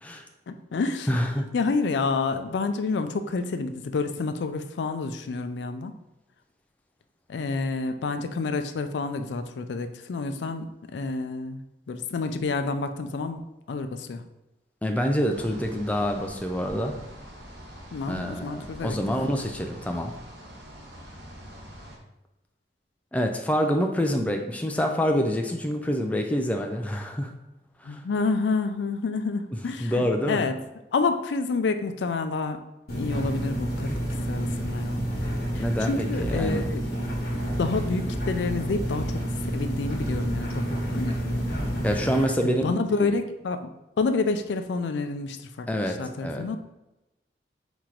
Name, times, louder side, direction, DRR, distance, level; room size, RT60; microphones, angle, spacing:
voice 1, 0.5-1.1 1.5-6.0 7.3-11.6 11.9-14.2 17.9-19.0 27.8-30.6 30.9-32.6 32.9-33.9 34.3-35.1 35.5-36.8 37.6-39.2 39.5-41.5 42.4-43.7 44.0-46.6, left 4 dB, 80° left, 8 dB, 0.4 m, -29 dB
voice 2, 1.1-1.5 14.8-17.0 18.1-20.1 23.1-27.3 27.8-28.0 29.8-30.5 35.6-36.6 41.8-43.1 45.7-46.5, equal, 10° left, 3 dB, 0.3 m, -26 dB
sound 1, 15.3-22.0, equal, 70° right, 1.0 m, -44 dB
sound 2, 32.9-42.3, equal, 60° left, 1.2 m, -29 dB
4.3 x 3.0 x 3.8 m, 0.95 s
head